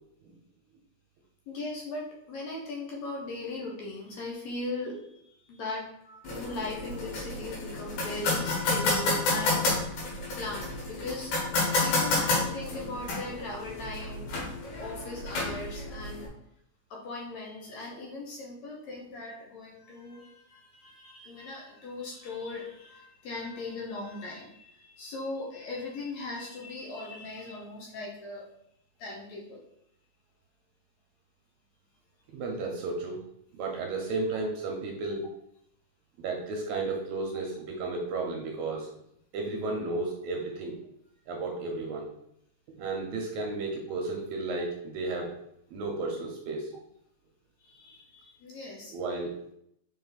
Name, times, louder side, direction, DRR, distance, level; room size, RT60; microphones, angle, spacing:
voice 1, 1.5-5.0 5.5-9.7 10.4-14.3 14.8-16.3 16.9-28.5 29.0-29.6 45.2-45.3 47.6-48.9, left 2 dB, 65° left, -1 dB, 2.0 m, -39 dB
sound 1, 6.2-16.3, left 2 dB, 85° left, 3.2 m, -30 dB
voice 2, 32.3-33.2 33.5-35.3 36.2-38.9 39.3-40.8 41.3-42.1 42.8-45.3 45.7-46.7 48.9-49.5, right 3 dB, 75° right, 1 dB, 1.8 m, -33 dB
5.1 x 5.1 x 4.0 m, 0.75 s
omnidirectional pair, 3.9 m